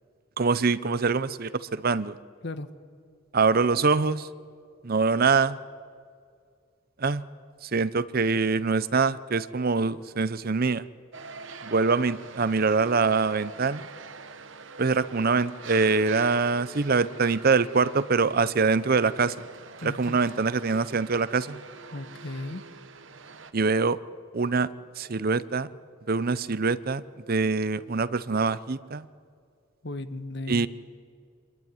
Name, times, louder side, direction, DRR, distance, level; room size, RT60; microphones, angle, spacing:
voice 1, 0.4-2.2 3.3-4.3 4.8-5.6 7.0-7.2 7.6-10.8 11.6-13.9 14.8-19.3 19.8-21.6 23.5-24.0 24.3-24.7 25.0-25.7 26.1-27.0 27.3-29.0 30.5-30.7, right 4 dB, 45° right, 16 dB, 0.7 m, -24 dB
sound 1, 11.1-23.5, right 4 dB, 65° right, 1.1 m, -45 dB
voice 2, 19.8-20.2 21.9-22.7 29.8-30.7, left 2 dB, 55° left, 11 dB, 1.3 m, -36 dB
26.5 x 21.5 x 9.7 m, 2.2 s
head